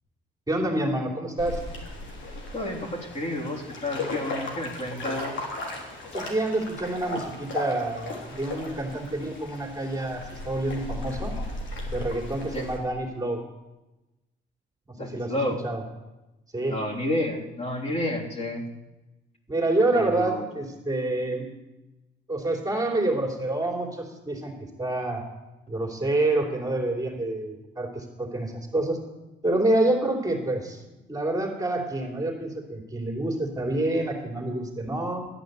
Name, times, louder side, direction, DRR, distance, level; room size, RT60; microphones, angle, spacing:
voice 1, 0.5-1.6 6.1-11.3 11.9-13.4 15.0-15.3 15.6-15.8 16.5-16.8 19.5-21.5 22.3-25.2 25.7-29.0 29.4-30.8 31.1-35.3, right 2 dB, 20° right, 0 dB, 3.3 m, -27 dB
sound 1, 1.4-12.8, left 2 dB, 70° left, 3.4 m, -36 dB
voice 2, 2.5-5.4 12.5-12.7 15.0-15.6 16.7-18.7 19.9-20.4, left 1 dB, 35° left, -3 dB, 3.6 m, -30 dB
12.5 x 9.1 x 8.1 m, 1.0 s
cardioid pair, 90°, 20 cm